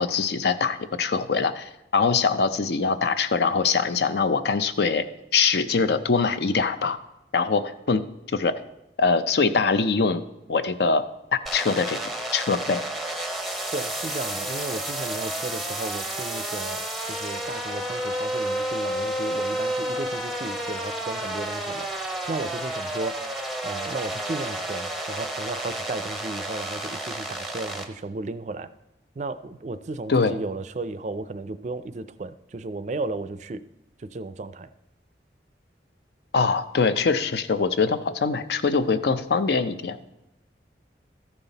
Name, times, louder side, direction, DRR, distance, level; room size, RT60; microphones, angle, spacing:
voice 1, 0.0-5.0 5.3-7.0 7.3-8.0 8.3-8.6 9.0-10.2 10.5-11.0 11.3-12.0 12.3-12.8 30.1-30.4 36.3-40.0, left 4 dB, 70° left, 11 dB, 0.5 m, -23 dB
sound 1, 11.5-27.9, right 1 dB, ahead, 0.6 m, -31 dB
voice 2, 13.7-23.4 23.6-28.7 29.2-33.6 34.0-34.7, right 3 dB, 40° right, 13 dB, 0.4 m, -34 dB
13.5 x 5.6 x 4.0 m, 0.93 s
head